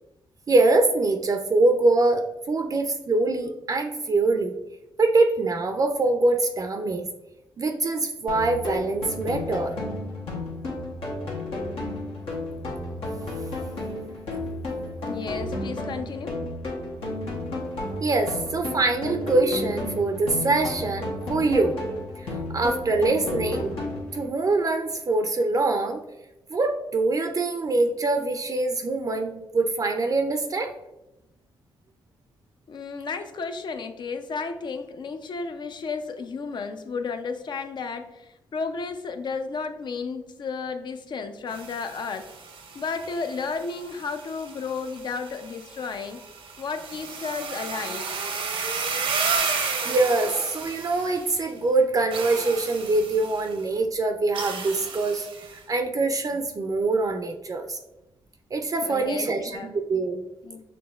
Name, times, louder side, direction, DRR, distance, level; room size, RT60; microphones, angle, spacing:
voice 1, 0.5-4.5 5.0-7.1 7.6-9.7 18.0-21.8 22.2-23.7 24.1-26.0 26.5-30.7 49.9-55.3 55.5-57.8 58.5-60.2, right 3 dB, 40° right, 5 dB, 0.4 m, -24 dB
sound 1, 8.3-24.3, left 2 dB, 80° left, 1.0 m, -32 dB
voice 2, 15.1-16.4 32.7-42.3 42.7-46.2 46.6-48.2 58.8-59.7 60.4-60.6, left 4 dB, 55° left, 8 dB, 0.5 m, -33 dB
sound 2, 41.5-51.5 52.1-53.5 54.3-55.6, right 5 dB, 70° right, 0.7 m, -33 dB
6.0 x 3.0 x 2.3 m, 0.93 s
cardioid pair, 65°, 9 cm